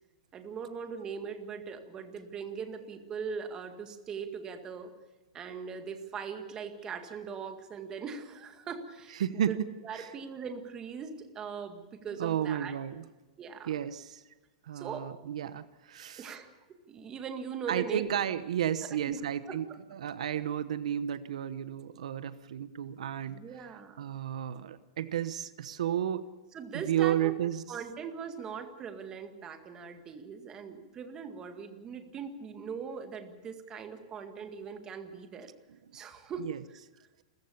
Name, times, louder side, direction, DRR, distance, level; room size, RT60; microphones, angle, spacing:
voice 1, 0.3-4.9 5.3-9.5 9.8-12.8 13.4-13.7 14.7-15.1 16.2-16.5 16.9-18.1 18.9-19.2 19.5-19.6 23.3-24.0 26.5-27.3 27.7-35.5 35.9-36.8, right 6 dB, 20° right, 7 dB, 2.0 m, -40 dB
voice 2, 9.2-9.6 10.0-10.1 12.2-13.0 13.7-14.2 14.6-16.3 17.7-23.4 24.0-26.3 26.7-27.6 36.4-36.6, right 10 dB, 85° right, 14 dB, 1.0 m, -32 dB
29.0 x 15.0 x 7.1 m, 1.2 s
supercardioid pair, 160°, 3 cm